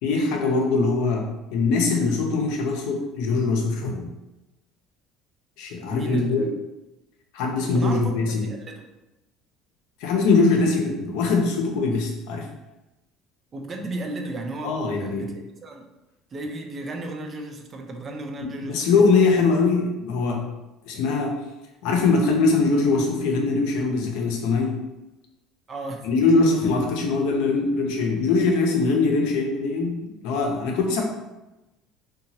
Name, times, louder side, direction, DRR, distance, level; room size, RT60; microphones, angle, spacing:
voice 1, 0.0-4.1 5.6-6.4 7.3-8.4 10.0-12.5 14.6-15.3 18.6-20.4 20.9-21.3 21.8-24.7 26.0-31.0, left 3 dB, 80° left, 1 dB, 0.6 m, -22 dB
voice 2, 5.9-6.5 7.7-8.1 8.4-8.9 13.5-15.9 16.3-18.9 25.7-26.1, right 2 dB, 35° right, 3 dB, 0.4 m, -34 dB
2.8 x 2.2 x 2.7 m, 0.99 s
supercardioid pair, 105°, 0 cm